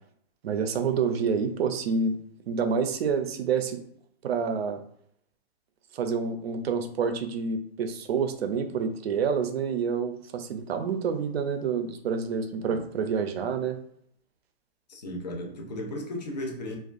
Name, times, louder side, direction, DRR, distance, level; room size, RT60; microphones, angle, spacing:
voice 1, 0.4-2.2 2.5-3.8 4.2-4.8 5.9-13.8, right 6 dB, 80° right, 0.5 m, -28 dB
voice 2, 14.9-16.8, left 1 dB, 45° left, 0.5 m, -35 dB
2.5 x 2.3 x 2.4 m
hypercardioid pair, 180°, 31 cm